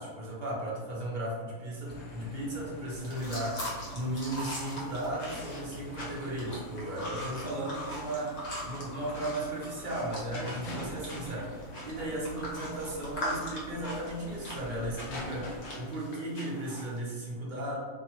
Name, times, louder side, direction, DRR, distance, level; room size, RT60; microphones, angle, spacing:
voice 1, 0.0-17.8, right 1 dB, 45° right, -5 dB, 0.7 m, -36 dB
sound 1, 1.9-15.7, equal, 75° left, 1.0 m, -45 dB
sound 2, 3.0-17.0, left 1 dB, 50° left, 0.8 m, -41 dB
2.5 x 2.5 x 2.8 m, 1.5 s
omnidirectional pair, 1.5 m